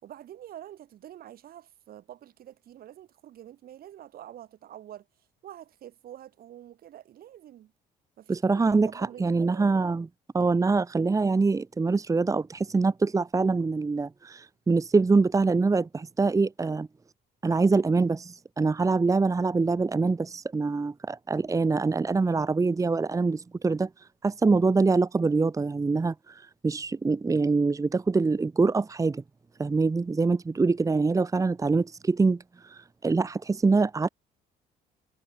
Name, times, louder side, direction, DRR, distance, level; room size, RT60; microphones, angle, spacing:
voice 1, 0.0-5.1 5.4-7.7 8.2-9.7 15.9-16.1, right 12 dB, 60° right, 5.6 m, -47 dB
voice 2, 8.3-10.1 10.3-16.9 17.4-23.9 24.2-29.2 29.6-34.1, right 4 dB, 20° right, 1.3 m, -24 dB
cardioid pair, 110°, 17 cm